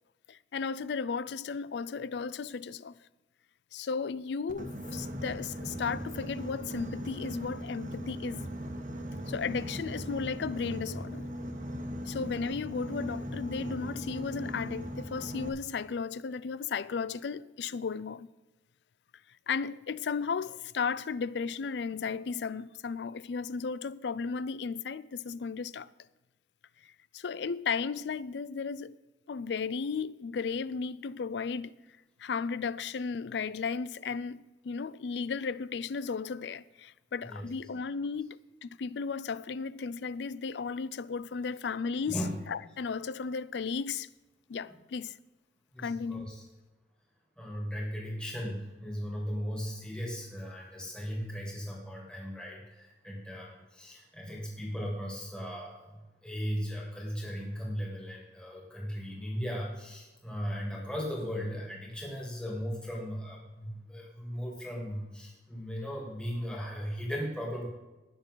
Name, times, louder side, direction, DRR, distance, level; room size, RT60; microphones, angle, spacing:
voice 1, 0.3-2.9 3.7-8.4 9.2-11.3 12.1-18.3 19.5-25.9 27.1-29.0 29.3-31.7 32.2-42.2 42.5-44.1 44.5-45.2 45.8-46.3, left 5 dB, 75° left, 0.4 m, -35 dB
Boat Water vehicle, 4.5-15.5, equal, 45° right, 1.5 m, -39 dB
voice 2, 45.7-46.4 47.4-56.0 56.2-67.7, equal, 5° left, 2.8 m, -37 dB
19.5 x 6.7 x 3.9 m
head